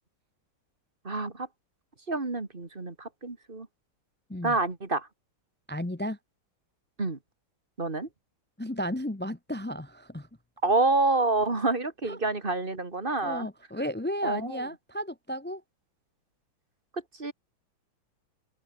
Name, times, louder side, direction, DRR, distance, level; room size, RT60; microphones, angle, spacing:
voice 1, 1.0-1.5 2.1-3.7 4.4-5.1 7.0-7.2 7.8-8.1 10.6-13.5 14.2-14.6 17.2-17.3, right 3 dB, 25° right, 2.5 m, -27 dB
voice 2, 5.7-6.2 8.6-10.3 12.0-12.2 13.2-15.6, equal, 15° left, 0.4 m, -33 dB
omnidirectional pair, 2.3 m